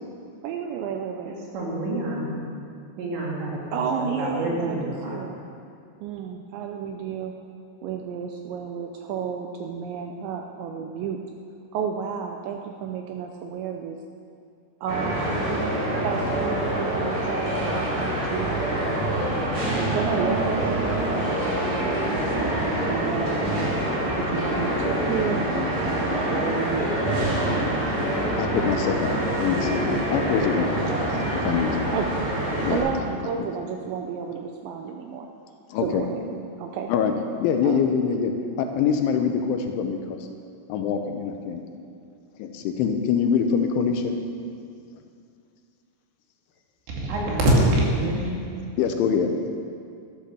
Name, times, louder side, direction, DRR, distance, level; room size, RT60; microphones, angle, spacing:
voice 1, 0.4-1.4 3.7-5.4 6.0-7.3 7.8-11.2 11.7-14.0 14.8-15.5 16.0-19.0 19.7-23.7 24.2-27.4 31.9-32.2 32.7-35.3 35.8-36.3 36.6-36.9 37.6-37.9, right 7 dB, 85° right, 3 dB, 2.7 m, -32 dB
voice 2, 1.2-2.4 2.9-5.2 47.0-48.4, right 1 dB, 65° right, -3 dB, 4.5 m, -25 dB
sound 1, 14.9-32.8, right 1 dB, 40° right, 5.0 m, -25 dB
voice 3, 28.4-30.7 31.4-31.9 32.6-33.1 35.7-36.0 36.9-37.1 37.4-40.2 40.7-41.6 42.4-44.1 48.8-49.3, left 7 dB, 80° left, 5 dB, 3.1 m, -24 dB
12.5 x 11.5 x 6.8 m, 2.4 s
omnidirectional pair, 5.8 m